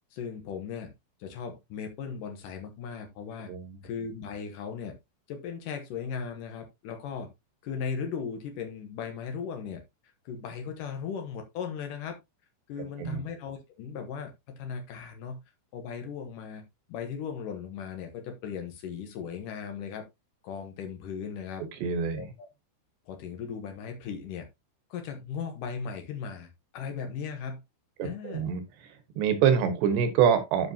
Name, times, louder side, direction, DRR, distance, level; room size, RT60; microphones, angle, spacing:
voice 1, 0.1-0.9 1.2-3.5 3.8-5.0 5.3-7.3 7.6-9.8 10.3-12.2 12.7-15.4 15.7-16.6 16.9-20.0 20.4-21.6 22.2-22.5 23.1-24.5 24.9-27.6 28.0-28.5, left 6 dB, 85° left, 1.8 m, -37 dB
voice 2, 3.5-3.8 13.0-13.2 21.8-22.3 28.0-30.7, right 8 dB, 70° right, 3.1 m, -26 dB
12.5 x 5.5 x 2.8 m
omnidirectional pair, 5.7 m